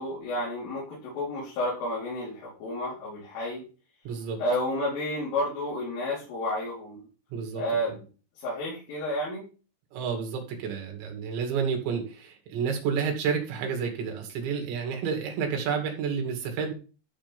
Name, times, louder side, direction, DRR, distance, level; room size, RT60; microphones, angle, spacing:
voice 1, 0.0-3.6 4.4-7.0 7.6-8.0 8.4-9.4, left 1 dB, 75° left, -7 dB, 6.5 m, -31 dB
voice 2, 4.1-4.4 7.3-7.6 9.9-16.7, right 6 dB, 65° right, 3 dB, 4.4 m, -30 dB
13.0 x 5.2 x 5.2 m, 0.36 s
omnidirectional pair, 5.7 m